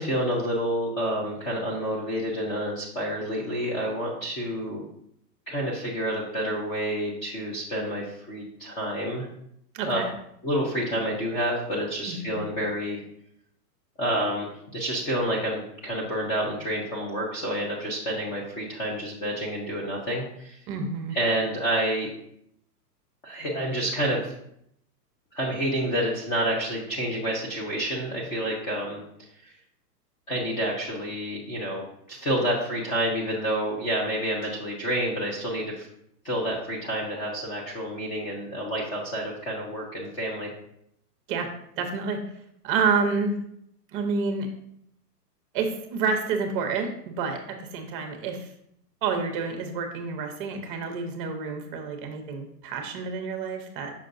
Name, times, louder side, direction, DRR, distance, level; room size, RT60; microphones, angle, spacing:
voice 1, 0.0-4.8 5.5-9.3 9.8-10.0 10.4-13.0 14.0-20.6 21.1-22.1 23.2-24.3 25.3-29.0 30.3-35.9 36.2-40.5, equal, 15° left, -4 dB, 0.5 m, -29 dB
voice 2, 9.7-10.1 12.1-12.4 20.7-21.2 41.3-41.5 41.8-42.2 42.6-43.3 43.9-44.5 45.5-48.5 49.0-53.9, right 5 dB, 30° right, 4 dB, 0.8 m, -29 dB
6.5 x 5.6 x 2.6 m, 0.73 s
hypercardioid pair, 145°, 50 cm